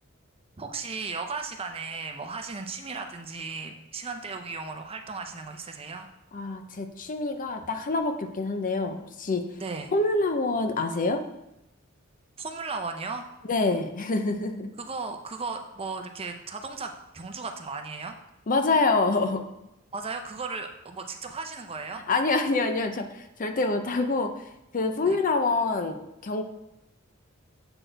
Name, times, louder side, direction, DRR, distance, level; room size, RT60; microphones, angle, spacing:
voice 1, 0.6-6.1 9.6-9.9 12.4-13.3 14.8-18.2 19.9-22.0 25.0-25.2, right 4 dB, 30° right, 5 dB, 0.6 m, -36 dB
voice 2, 6.3-9.4 9.9-11.2 13.5-14.7 18.5-19.4 22.1-24.3 24.7-26.4, left 3 dB, 40° left, 6 dB, 0.6 m, -26 dB
7.8 x 4.3 x 4.5 m, 0.89 s
head